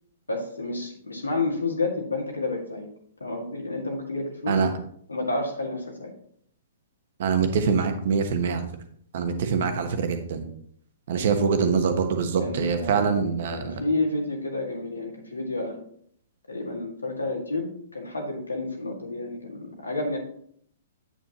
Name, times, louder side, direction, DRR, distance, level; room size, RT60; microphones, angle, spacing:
voice 1, 0.3-2.9 3.2-4.6 5.1-6.1 12.4-13.1 13.5-15.8 16.5-17.6 17.9-20.2, left 2 dB, 85° left, 1 dB, 2.0 m, -30 dB
voice 2, 7.2-8.6 9.1-10.5 11.1-13.7, right 5 dB, 55° right, 7 dB, 1.2 m, -24 dB
8.2 x 7.4 x 3.0 m, 0.65 s
figure-of-eight pair, 115°, 0 cm